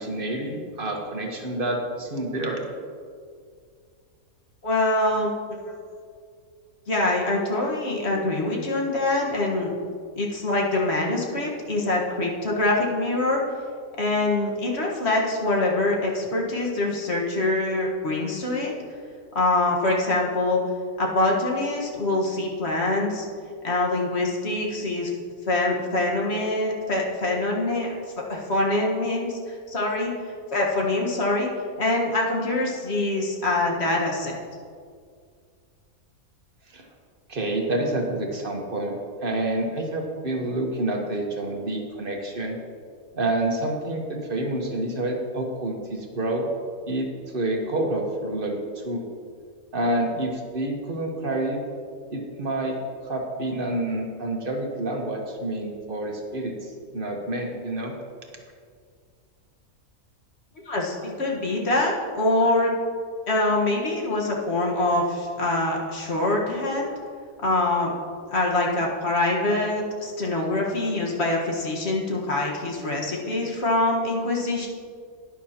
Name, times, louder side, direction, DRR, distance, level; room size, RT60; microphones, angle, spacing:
voice 1, 0.0-2.6 36.7-36.9 37.3-42.6 43.1-46.5 46.9-47.1 47.3-49.0 49.7-51.6 52.1-52.8 53.0-57.9, right 1 dB, 40° right, 1 dB, 1.4 m, -28 dB
voice 2, 4.6-5.8 6.9-9.7 10.2-13.4 14.0-18.7 19.3-20.6 21.0-23.3 23.6-25.1 25.5-27.9 28.3-30.1 30.5-31.5 31.8-34.3 60.7-62.7 63.3-66.9 67.4-67.9 68.3-74.7, left 2 dB, 50° left, -2 dB, 1.7 m, -24 dB
12.0 x 10.5 x 2.9 m, 2.1 s
omnidirectional pair, 1.5 m